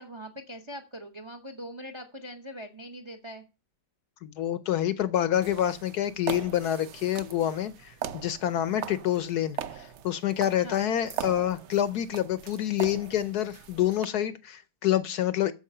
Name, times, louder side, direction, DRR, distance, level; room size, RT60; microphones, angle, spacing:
voice 1, 0.0-3.4 10.6-10.8, equal, 25° right, 0.6 m, -42 dB
voice 2, 4.2-15.5, left 11 dB, 65° left, 1.0 m, -27 dB
sound 1, 5.3-14.0, right 9 dB, 80° right, 0.6 m, -40 dB
8.5 x 7.0 x 6.6 m
omnidirectional pair, 2.1 m